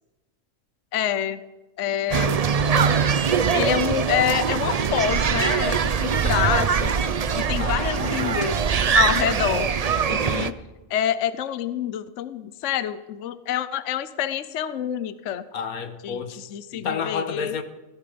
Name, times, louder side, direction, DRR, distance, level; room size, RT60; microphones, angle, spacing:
voice 1, 0.9-1.4 1.8-2.4 3.5-6.9 7.3-8.6 8.9-9.7 10.1-10.6 10.9-15.4 16.0-17.5, left 10 dB, 60° left, 13 dB, 1.0 m, -27 dB
sound 1, 2.1-10.5, right 6 dB, 65° right, 0.3 m, -22 dB
voice 2, 7.6-8.5 15.5-16.4 16.7-17.6, left 6 dB, 80° left, 9 dB, 1.7 m, -31 dB
17.0 x 16.0 x 5.1 m, 1.1 s
omnidirectional pair, 1.5 m